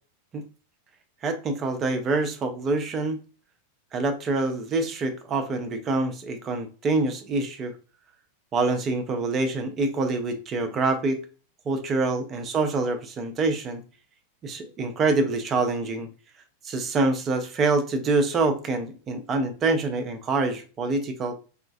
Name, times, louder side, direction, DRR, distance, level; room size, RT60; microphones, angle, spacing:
voice 1, 1.2-3.2 3.9-7.7 8.5-11.2 11.7-13.8 14.4-16.1 16.6-21.4, right 3 dB, 25° right, 5 dB, 0.6 m, -26 dB
4.2 x 2.4 x 2.4 m, 0.36 s
figure-of-eight pair, 90°, 0 cm